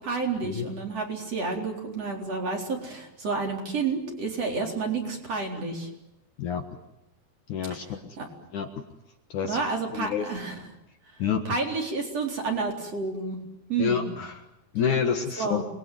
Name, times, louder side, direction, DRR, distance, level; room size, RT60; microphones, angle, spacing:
voice 1, 0.0-5.9 7.7-7.8 8.2-8.3 9.4-10.6 11.4-13.4 13.7-14.1 15.4-15.6, right 4 dB, 40° right, 1 dB, 5.0 m, -30 dB
voice 2, 7.5-8.2 8.5-8.8 9.3-9.6 9.9-10.3 11.2-11.6 13.8-14.5 14.7-15.6, left 7 dB, 60° left, 6 dB, 2.5 m, -28 dB
28.0 x 21.5 x 9.6 m, 0.88 s
omnidirectional pair, 4.6 m